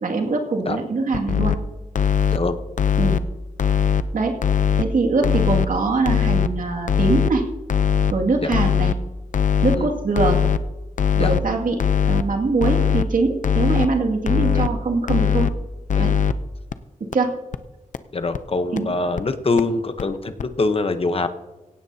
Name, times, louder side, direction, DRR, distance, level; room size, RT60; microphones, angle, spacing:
voice 1, 0.0-1.5 3.0-3.2 4.1-4.4 4.8-7.4 8.1-8.9 9.6-10.4 11.1-15.5 16.0-16.1 17.1-17.3 18.7-18.9, right 3 dB, 75° right, 1 dB, 2.3 m, -22 dB
sound 1, 1.1-1.6 1.9-2.4 2.8-3.2 3.6-4.0 4.4-4.8 5.2-5.7 6.0-6.5 6.9-7.3 7.7-8.1 8.5-8.9 9.3-9.8 10.2-10.6 11.0-11.4 11.8-12.2 12.6-13.0 13.4-13.9 14.3-14.7 15.1-15.5 15.9-16.3 16.7-16.8 17.1-17.2 17.5-17.6 17.9-18.0 18.3-18.4 18.8-18.9 19.2-19.3 19.6-19.7 20.0-20.1 20.4-20.5, left 7 dB, 65° left, 0.6 m, -19 dB
voice 2, 18.1-21.3, left 3 dB, 45° left, 9 dB, 1.0 m, -23 dB
17.0 x 16.0 x 2.8 m, 1.1 s
wide cardioid pair, 100°, 14 cm